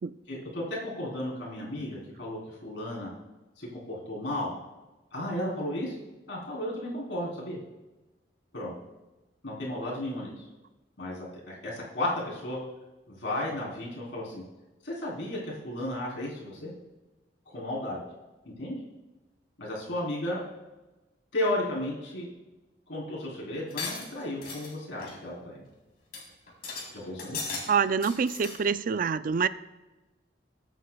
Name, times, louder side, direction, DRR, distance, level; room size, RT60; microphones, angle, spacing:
voice 1, 0.3-3.1 3.6-4.5 5.1-6.0 6.3-7.6 8.5-8.7 9.4-10.4 11.0-11.3 11.6-12.6 13.1-14.4 14.8-16.7 17.5-18.0 18.4-18.8 19.6-20.4 21.3-22.3 22.9-25.6 26.9-27.4, left 1 dB, 80° left, -4 dB, 3.8 m, -34 dB
sound 1, 23.7-24.7 25.0-25.2 25.7-25.8 26.1-26.2 26.5-26.9 27.2-27.6 27.9-28.6, left 4 dB, 55° left, 3.7 m, -36 dB
voice 2, 27.7-29.5, right 6 dB, 50° right, 14 dB, 0.4 m, -26 dB
22.0 x 9.0 x 2.3 m, 1.1 s
head